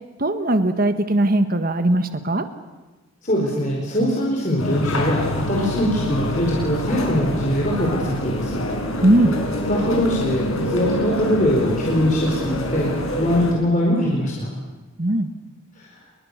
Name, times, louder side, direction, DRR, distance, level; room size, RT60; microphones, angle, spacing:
voice 1, 0.2-2.4 9.0-9.3 15.0-15.3, right 1 dB, 45° right, 9 dB, 1.6 m, -19 dB
voice 2, 3.2-8.6 9.7-12.9 13.2-14.5 15.8-15.9, equal, 35° left, -3 dB, 4.7 m, -22 dB
sound 1, 4.6-13.5, left 1 dB, 80° left, 6.3 m, -26 dB
30.0 x 23.0 x 6.8 m, 1.2 s
head